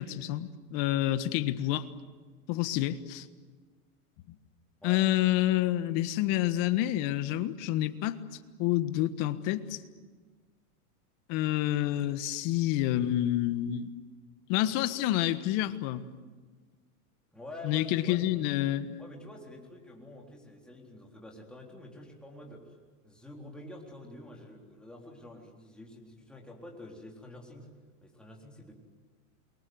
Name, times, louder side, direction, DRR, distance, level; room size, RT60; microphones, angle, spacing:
voice 1, 0.0-1.9 2.5-3.3 4.8-8.2 8.6-9.8 11.3-13.9 14.5-16.1 17.6-19.0, left 14 dB, 45° left, 12 dB, 1.5 m, -28 dB
voice 2, 17.3-18.3 19.0-22.8 23.0-27.7 28.0-28.7, left 1 dB, ahead, -1 dB, 3.8 m, -47 dB
28.5 x 23.5 x 7.9 m, 1.4 s
supercardioid pair, 130°, 46 cm